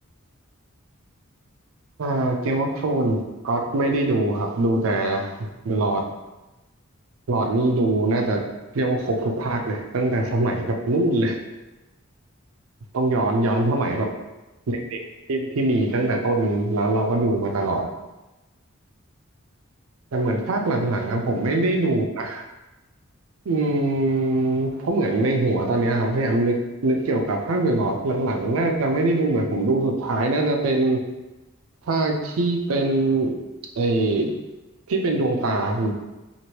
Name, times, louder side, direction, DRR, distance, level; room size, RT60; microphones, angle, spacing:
voice 1, 2.0-6.0 7.3-8.4 8.7-11.4 12.9-14.1 14.7-15.0 15.3-17.9 20.1-22.4 23.5-31.0 31.9-33.3 33.8-34.3 34.9-35.9, right 2 dB, 70° right, 2 dB, 0.5 m, -23 dB
3.1 x 2.5 x 2.9 m, 1.0 s
head